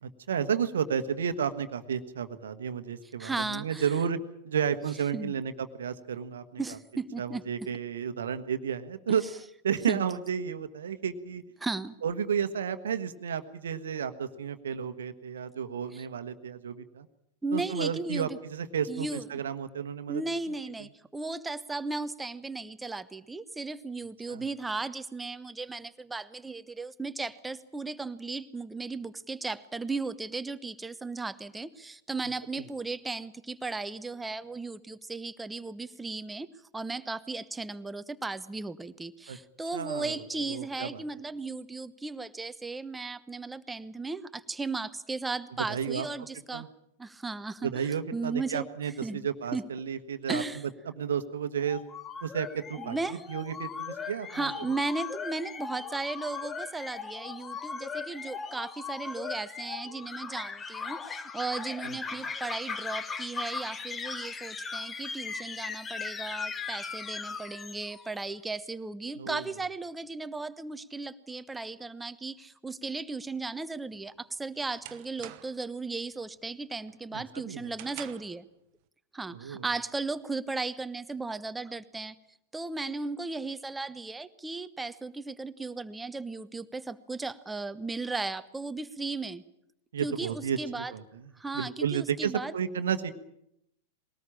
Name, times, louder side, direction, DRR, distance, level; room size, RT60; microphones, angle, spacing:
voice 1, 0.0-4.2 4.4-6.6 7.2-9.3 9.6-11.4 12.0-17.1 17.5-20.2 24.3-24.4 32.5-32.6 39.3-39.4 39.7-40.2 40.5-41.0 45.7-46.1 46.5-46.7 47.6-50.4 51.0-51.8 52.2-53.0 53.3-54.5 61.8-62.0 69.2-69.5 77.1-77.7 79.3-79.6 89.9-91.0 91.5-93.1, right 7 dB, 65° right, 10 dB, 1.3 m, -32 dB
voice 2, 3.2-3.9 5.1-5.3 6.6-7.7 9.1-9.3 9.9-10.0 11.6-11.9 15.9-16.1 17.4-18.3 18.9-19.4 20.1-36.5 36.7-46.7 47.0-48.7 49.0-49.3 49.5-49.6 50.3-50.6 52.8-53.2 54.0-78.5 79.1-82.2 82.5-89.4 90.0-90.9 91.4-92.5, right 3 dB, 10° right, 14 dB, 1.0 m, -36 dB
sound 1, 51.6-68.2, left 5 dB, 20° left, 1.2 m, -38 dB
sound 2, 73.9-75.7 76.1-76.5 76.9-78.4, right 15 dB, 45° right, 1.1 m, -47 dB
21.5 x 18.5 x 8.7 m, 0.78 s
figure-of-eight pair, 95°, 0 cm